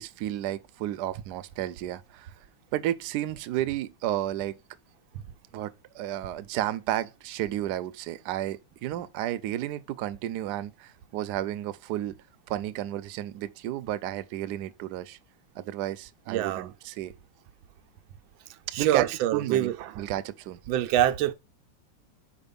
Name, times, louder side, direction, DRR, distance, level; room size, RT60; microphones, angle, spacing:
voice 1, 0.0-2.3 2.7-4.6 5.5-12.1 12.5-15.2 15.5-17.1 18.8-19.1 19.3-20.6, right 13 dB, 70° right, 1.0 m, -32 dB
voice 2, 16.3-16.7 18.5-20.0 20.7-21.3, right 12 dB, 90° right, 1.4 m, -26 dB
5.2 x 4.7 x 5.2 m
omnidirectional pair, 2.1 m